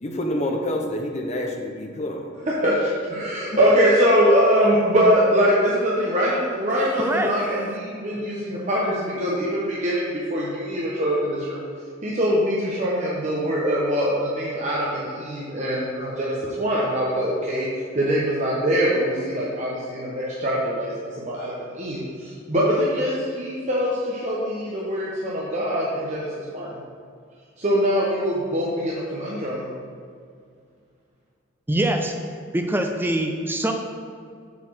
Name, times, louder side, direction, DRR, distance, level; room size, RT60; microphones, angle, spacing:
voice 1, 0.0-2.3 3.4-3.6, left 1 dB, 35° left, 2 dB, 0.8 m, -28 dB
voice 2, 2.6-11.6 12.0-17.7 17.9-20.9 21.2-26.8 27.6-29.7, equal, 35° right, -6 dB, 0.9 m, -23 dB
voice 3, 7.0-7.3 31.7-32.1 32.5-33.7, right 1 dB, 10° right, 4 dB, 0.5 m, -23 dB
7.2 x 4.1 x 6.4 m, 2.2 s
head